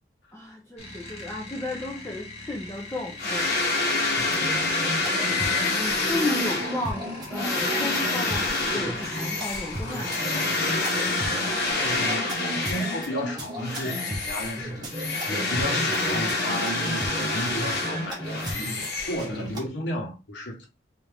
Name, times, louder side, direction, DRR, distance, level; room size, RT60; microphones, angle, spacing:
voice 1, 0.3-3.5 4.3-4.5 5.7-10.5, left 2 dB, 15° left, 0.6 m, -34 dB
sound 1, 0.8-11.7, left 2 dB, 35° left, 1.2 m, -42 dB
sound 2, 3.2-13.2 13.6-19.6, left 2 dB, 55° left, 1.2 m, -27 dB
sound 3, 4.2-19.7, equal, 25° right, 0.9 m, -35 dB
voice 2, 5.0-5.5 11.8-14.9 15.3-20.7, equal, 75° left, 1.1 m, -34 dB
3.7 x 2.7 x 3.4 m
head